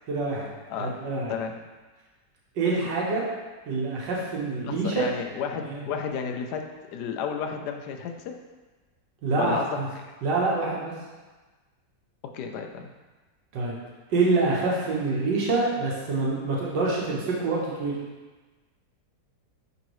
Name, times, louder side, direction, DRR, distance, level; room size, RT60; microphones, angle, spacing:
voice 1, 0.1-0.5 0.8-1.3 2.6-3.2 3.7-5.1 5.7-5.8 9.2-9.9 10.2-10.9 13.5-13.7 14.1-18.0, right 3 dB, 80° right, -4 dB, 1.8 m, -26 dB
voice 2, 4.6-6.6 6.9-8.3 9.3-9.8 12.3-12.9, left 7 dB, 75° left, 4 dB, 1.1 m, -32 dB
11.0 x 3.8 x 3.1 m, 1.3 s
omnidirectional pair, 1.9 m